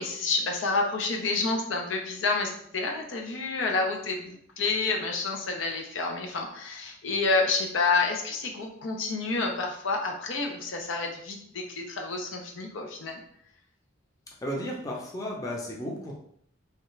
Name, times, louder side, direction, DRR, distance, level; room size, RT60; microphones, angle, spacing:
voice 1, 0.0-13.2, left 3 dB, 80° left, 3 dB, 0.5 m, -29 dB
voice 2, 14.4-16.1, equal, 20° left, -2 dB, 0.6 m, -34 dB
3.2 x 2.3 x 3.1 m, 0.67 s
head